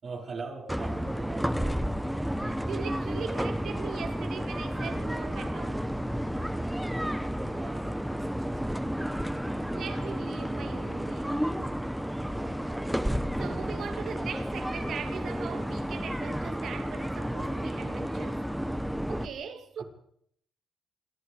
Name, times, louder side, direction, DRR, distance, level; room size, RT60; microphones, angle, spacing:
voice 1, 0.0-1.9 7.3-9.2 12.4-13.1 19.8-19.9, right 4 dB, 40° right, 6.2 m, -43 dB
sound 1, 0.7-19.3, equal, ahead, 1.7 m, -31 dB
voice 2, 2.4-5.9 9.7-11.5 13.4-18.5 19.1-19.8, right 7 dB, 60° right, 2.7 m, -40 dB
28.0 x 23.0 x 5.1 m
cardioid pair, 130°, 0 cm